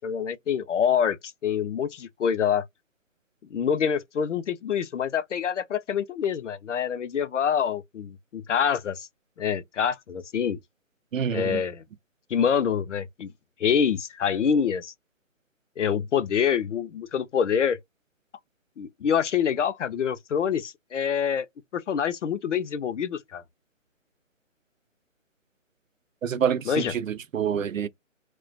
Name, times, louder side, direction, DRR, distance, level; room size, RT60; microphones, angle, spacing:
voice 1, 0.0-2.7 3.5-9.1 9.4-10.6 11.3-11.8 12.3-13.3 13.6-14.9 15.8-17.8 18.8-21.5 21.7-23.4 26.7-26.9, left 7 dB, 65° left, 0.5 m, -26 dB
voice 2, 11.1-11.6 26.2-27.9, right 8 dB, 80° right, 0.6 m, -27 dB
2.3 x 2.1 x 2.5 m
figure-of-eight pair, 150°, 39 cm